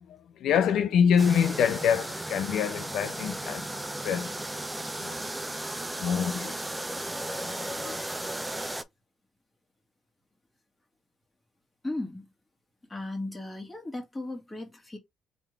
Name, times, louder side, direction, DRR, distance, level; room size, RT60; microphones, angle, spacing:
voice 1, 0.4-3.7 4.0-4.3 5.0-5.2 6.0-6.6 7.4-8.0, left 7 dB, 75° left, 0.4 m, -25 dB
sound 1, 1.2-8.8, right 1 dB, 10° right, 0.6 m, -35 dB
voice 2, 11.8-12.3 12.9-15.0, left 2 dB, 20° left, 2.0 m, -36 dB
3.7 x 3.4 x 3.3 m
cardioid pair, 90°, 0 cm